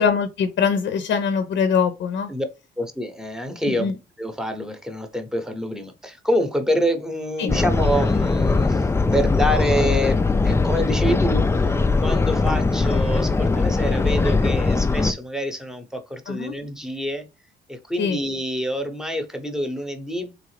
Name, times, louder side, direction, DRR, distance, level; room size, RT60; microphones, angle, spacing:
voice 1, 0.0-2.3 3.7-4.0 7.4-7.5 16.3-16.5 18.0-18.2, left 6 dB, 65° left, 0.6 m, -22 dB
voice 2, 2.8-3.9 4.2-8.9 9.1-11.7 12.0-17.2 17.7-20.3, equal, 5° right, 0.8 m, -26 dB
sound 1, 7.5-15.1, left 3 dB, 15° left, 0.4 m, -20 dB
3.7 x 3.2 x 3.2 m
cardioid pair, 90°, 20 cm